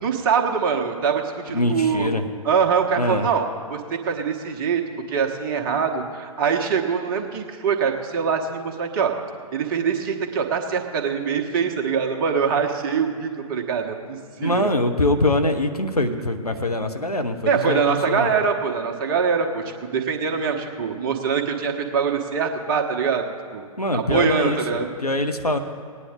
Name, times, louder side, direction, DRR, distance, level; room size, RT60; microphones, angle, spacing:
voice 1, 0.0-2.1 2.4-3.4 3.7-4.8 5.1-9.1 9.5-14.7 17.5-23.7 23.9-24.9, right 6 dB, 35° right, 2 dB, 1.2 m, -23 dB
voice 2, 1.5-2.2 3.0-3.3 14.4-18.4 23.8-25.6, left 1 dB, 90° left, 6 dB, 1.0 m, -23 dB
18.5 x 9.5 x 3.7 m, 2.3 s
figure-of-eight pair, 120°, 19 cm